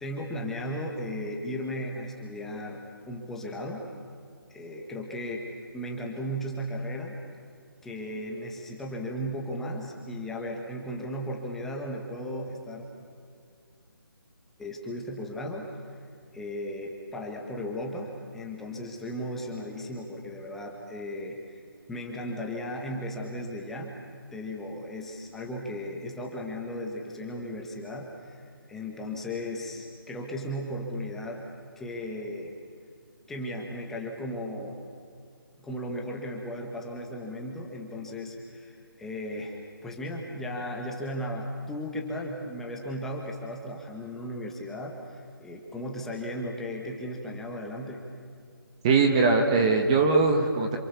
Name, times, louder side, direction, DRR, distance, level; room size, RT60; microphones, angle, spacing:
voice 1, 0.0-2.8 3.1-3.9 4.5-5.5 5.7-7.2 7.8-12.9 14.6-16.0 16.3-21.6 21.9-23.9 24.3-31.4 31.8-32.5 33.3-34.8 35.6-48.1, equal, 5° left, 0 dB, 1.4 m, -36 dB
voice 2, 48.8-50.8, right 4 dB, 15° right, 3 dB, 1.3 m, -21 dB
27.5 x 26.0 x 6.9 m, 2.3 s
hypercardioid pair, 170°, 12 cm